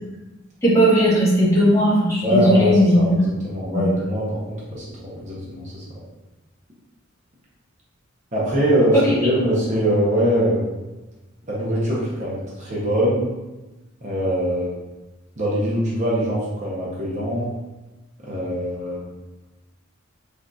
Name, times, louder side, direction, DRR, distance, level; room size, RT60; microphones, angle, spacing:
voice 1, 0.6-3.2 3.7-3.8 8.9-9.0, equal, 15° left, -9 dB, 1.0 m, -17 dB
voice 2, 2.2-5.8 8.3-10.7 11.5-13.3 14.0-14.7 15.4-17.5 18.2-19.1, equal, 35° right, -6 dB, 0.7 m, -23 dB
3.8 x 2.6 x 2.3 m, 1.1 s
head